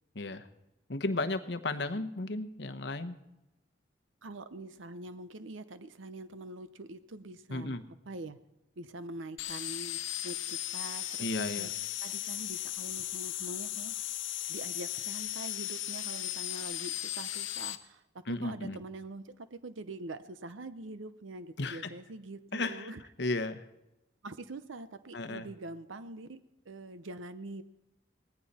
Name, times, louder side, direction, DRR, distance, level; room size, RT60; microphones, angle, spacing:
voice 1, 0.9-3.1 7.5-7.8 11.2-11.7 18.3-18.8 21.6-21.8 22.5-22.9 23.2-23.6 25.1-25.5, left 2 dB, 65° left, 10 dB, 1.0 m, -34 dB
voice 2, 4.2-8.4 8.8-11.3 11.5-11.7 12.0-14.0 14.5-23.0 24.2-27.6, right 2 dB, 90° right, 13 dB, 0.7 m, -44 dB
sound 1, 9.4-17.7, left 13 dB, 90° left, 0.9 m, -37 dB
18.5 x 15.0 x 4.3 m, 0.93 s
head